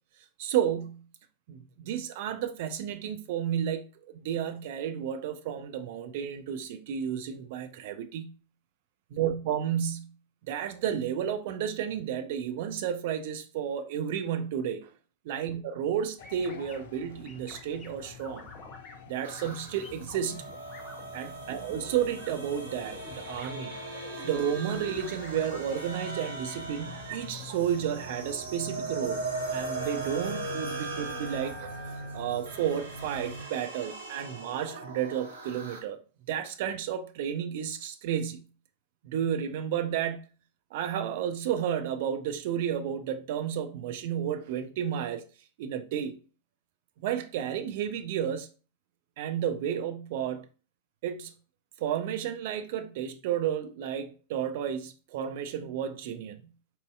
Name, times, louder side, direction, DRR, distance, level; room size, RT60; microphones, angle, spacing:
voice 1, 0.4-1.0 1.5-3.8 4.1-8.3 9.1-10.1 10.5-14.9 15.3-18.5 19.1-20.5 21.1-29.2 29.5-31.7 32.1-36.0 36.3-38.4 39.0-40.2 40.7-45.2 45.6-46.2 47.0-48.5 49.2-50.4 51.0-51.3 51.8-56.4, right 9 dB, 50° right, 0.4 m, -32 dB
sound 1, 16.2-33.5, left 1 dB, 60° left, 0.4 m, -46 dB
sound 2, 16.2-16.8 17.2-17.9 18.2-18.9 19.4-19.6 19.8-21.1 21.4-22.3 22.6-23.1 23.4-23.5 23.9-24.4 24.9-25.6, left 2 dB, 35° left, 0.9 m, -48 dB
sound 3, 19.2-35.8, right 3 dB, 70° right, 0.9 m, -39 dB
4.2 x 2.6 x 2.3 m
figure-of-eight pair, 90°, 0 cm